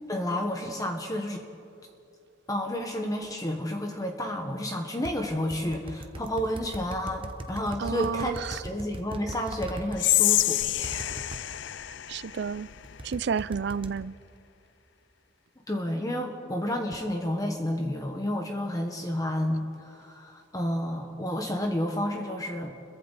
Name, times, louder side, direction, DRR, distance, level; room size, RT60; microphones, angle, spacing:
voice 1, 0.1-1.4 2.5-10.6 15.7-22.7, left 1 dB, 20° left, 1.2 m, -31 dB
sound 1, 5.0-10.0 10.8-11.4 12.8-14.0, right 1 dB, 25° right, 0.9 m, -39 dB
voice 2, 7.8-8.6 12.1-12.7 13.0-14.1, right 6 dB, 55° right, 0.4 m, -30 dB
Whispering, 9.9-13.2, left 15 dB, 60° left, 0.4 m, -27 dB
29.5 x 22.5 x 4.1 m
head